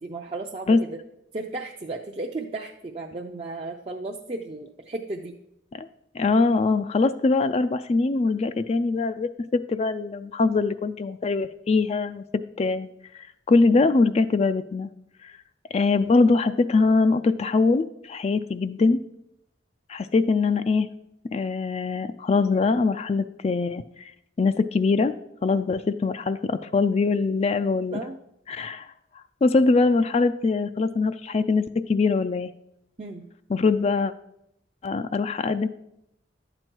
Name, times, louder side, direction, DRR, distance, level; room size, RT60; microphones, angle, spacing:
voice 1, 0.0-1.0 1.3-5.3 27.9-28.2 33.0-33.3, right 2 dB, 30° right, 1 dB, 0.5 m, -34 dB
voice 2, 6.1-12.2 12.6-12.9 13.5-14.9 15.2-15.3 15.7-19.0 19.9-20.9 21.3-24.1 24.4-25.1 25.4-28.0 28.5-28.9 29.4-31.6 31.9-32.5 33.5-34.1 34.8-35.7, left 3 dB, 35° left, 11 dB, 0.3 m, -22 dB
11.5 x 7.9 x 4.5 m, 0.82 s
head